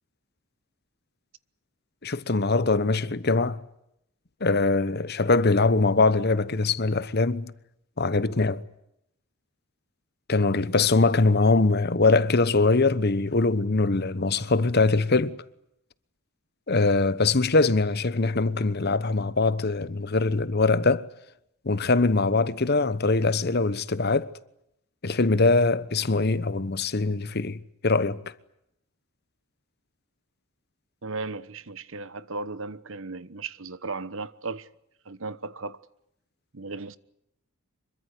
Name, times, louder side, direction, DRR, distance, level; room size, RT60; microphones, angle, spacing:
voice 1, 2.0-3.6 4.4-7.5 8.0-8.6 10.3-15.4 16.7-21.1 21.6-24.3 25.0-28.2, left 3 dB, 45° left, 1.0 m, -22 dB
voice 2, 31.0-34.7 35.0-35.8 36.5-37.0, right 3 dB, 60° right, 1.1 m, -36 dB
26.0 x 23.5 x 8.3 m
head